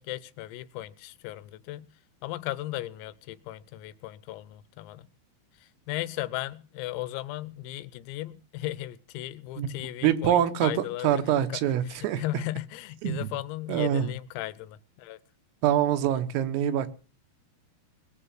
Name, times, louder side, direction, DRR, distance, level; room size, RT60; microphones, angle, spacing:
voice 1, 0.0-1.9 2.2-5.1 5.9-11.2 11.5-15.2, left 16 dB, 90° left, 3.6 m, -36 dB
voice 2, 10.0-12.2 13.0-13.3 13.7-14.1 15.6-16.9, right 10 dB, 80° right, 3.9 m, -25 dB
21.5 x 8.2 x 7.4 m
omnidirectional pair, 5.9 m